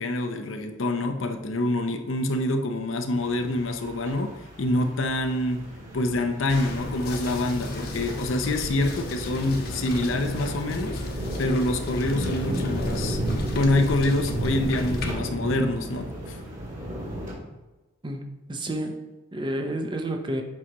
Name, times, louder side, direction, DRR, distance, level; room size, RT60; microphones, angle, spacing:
voice 1, 0.0-5.6 5.9-11.0 11.4-13.2 13.5-16.4, left 2 dB, 70° left, 6 dB, 0.6 m, -26 dB
sound 1, 3.1-17.4, right 1 dB, 40° right, 1.9 m, -34 dB
sound 2, 6.5-15.1, left 1 dB, 50° left, 1.0 m, -33 dB
voice 2, 18.0-20.4, right 1 dB, 25° right, 4 dB, 0.6 m, -31 dB
7.5 x 4.8 x 2.9 m, 1.1 s
head